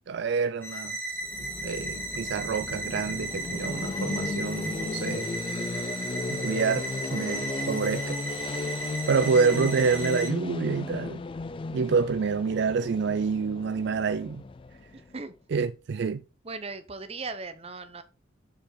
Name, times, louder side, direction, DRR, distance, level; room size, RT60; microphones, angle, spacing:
voice 1, 0.1-1.0 1.4-5.3 6.3-8.2 9.1-11.2 11.7-14.4 15.5-16.2, right 5 dB, 60° right, 0.4 m, -27 dB
sound 1, 0.6-10.3, right 2 dB, 10° left, 2.0 m, -35 dB
sound 2, 1.2-15.1, left 3 dB, 25° left, 0.3 m, -35 dB
voice 2, 14.9-15.3 16.4-18.0, right 3 dB, 30° right, 0.8 m, -38 dB
7.2 x 5.0 x 4.4 m
head